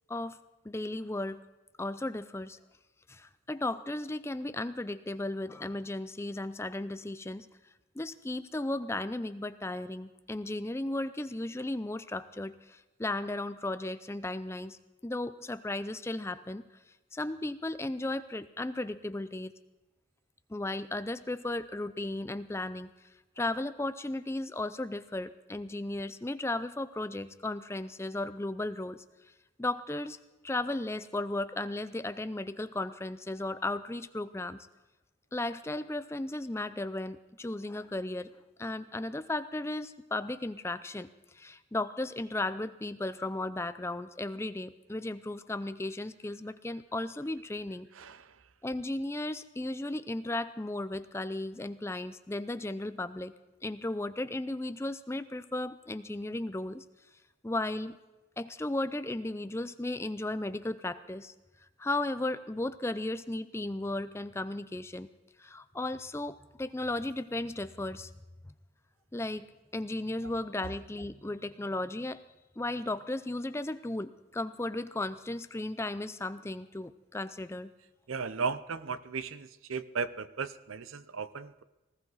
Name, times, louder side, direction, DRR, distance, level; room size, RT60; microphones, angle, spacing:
voice 1, 0.6-1.4 1.8-2.6 3.1-7.5 8.0-16.6 17.1-19.5 20.5-22.9 23.4-29.0 29.6-30.2 30.4-34.7 35.3-38.3 38.6-41.1 41.3-47.9 48.6-53.3 53.6-56.8 57.4-58.0 58.4-61.3 61.8-65.1 65.4-68.1 69.1-69.5 69.7-72.2 72.6-77.7, left 2 dB, 15° left, 13 dB, 0.4 m, -35 dB
voice 2, 47.9-48.3 70.2-70.3 78.1-81.6, right 5 dB, 85° right, 15 dB, 0.6 m, -36 dB
19.5 x 16.0 x 4.0 m, 1.1 s
head